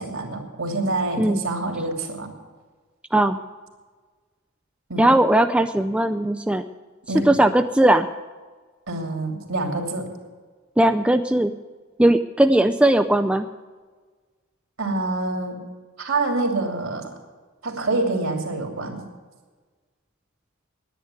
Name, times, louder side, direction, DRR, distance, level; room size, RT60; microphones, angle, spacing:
voice 1, 0.0-2.3 4.9-5.1 7.1-7.3 8.9-10.1 14.8-15.6 16.0-17.1 17.6-19.0, right 2 dB, 70° right, 3 dB, 2.8 m, -26 dB
voice 2, 5.0-6.7 7.3-8.1 10.8-11.5 12.0-13.5, right 1 dB, 5° right, 7 dB, 0.4 m, -18 dB
10.0 x 10.0 x 9.5 m, 1.4 s
head